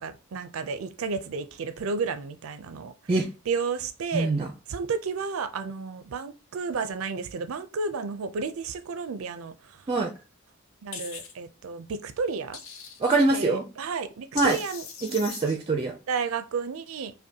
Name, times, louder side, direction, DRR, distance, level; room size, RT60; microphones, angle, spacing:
voice 1, 0.0-2.9 3.5-4.3 4.7-9.8 10.8-12.6 13.3-14.8 15.4-15.5 16.1-17.1, right 5 dB, 90° right, 0.4 m, -32 dB
voice 2, 4.1-4.5 9.9-10.1 13.0-13.7 14.3-14.6 15.0-16.0, right 3 dB, 25° right, 0.4 m, -24 dB
sound 1, 10.9-11.3 12.5-13.2 14.4-15.5, left 6 dB, 85° left, 0.7 m, -39 dB
5.1 x 2.1 x 2.7 m
head